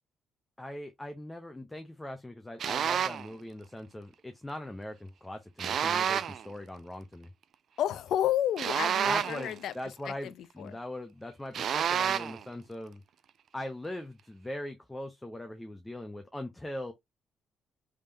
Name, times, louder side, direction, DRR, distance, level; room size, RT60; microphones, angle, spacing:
voice 1, 0.6-7.3 9.1-13.0 13.5-16.9, left 1 dB, 10° left, 0.7 m, -41 dB
sound 1, 2.6-3.3 5.6-6.4 8.6-9.5 11.5-12.4, right 8 dB, 65° right, 0.3 m, -29 dB
voice 2, 7.8-9.7 10.1-10.7, left 11 dB, 75° left, 0.4 m, -31 dB
3.6 x 3.2 x 2.7 m
cardioid pair, 90°, 0 cm